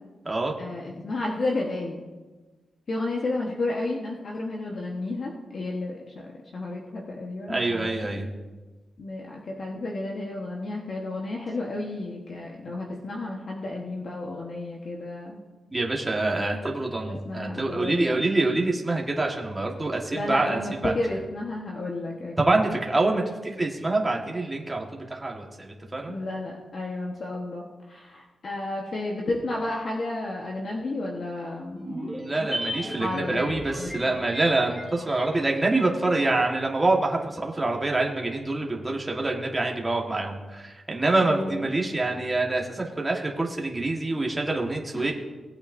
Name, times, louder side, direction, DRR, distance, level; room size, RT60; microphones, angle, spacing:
voice 1, 0.6-2.0 2.9-8.1 9.0-15.4 17.1-18.6 20.1-22.6 26.1-31.9 33.0-34.2 41.2-41.7 44.9-45.1, left 2 dB, 50° left, -1 dB, 1.2 m, -32 dB
voice 2, 7.5-8.3 15.7-20.9 22.4-26.1 32.1-45.1, right 2 dB, 15° right, 0 dB, 1.4 m, -26 dB
sound 1, 31.8-36.3 36.5-36.6, equal, 15° left, 2.1 m, -37 dB
18.5 x 8.7 x 2.6 m, 1.3 s
wide cardioid pair, 135°, 0 cm